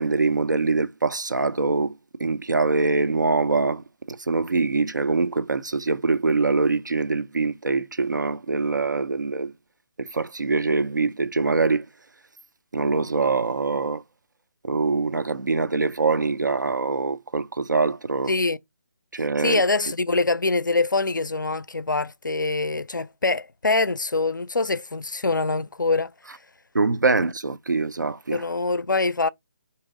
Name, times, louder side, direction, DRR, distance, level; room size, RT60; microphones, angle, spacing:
voice 1, 0.0-9.5 10.0-11.9 12.7-14.0 14.6-18.3 19.1-19.6 26.7-28.4, right 3 dB, 75° right, 0.5 m, -24 dB
voice 2, 18.3-18.6 19.4-26.1 28.3-29.3, left 3 dB, 85° left, 0.4 m, -24 dB
3.8 x 2.9 x 4.6 m
figure-of-eight pair, 150°, 10 cm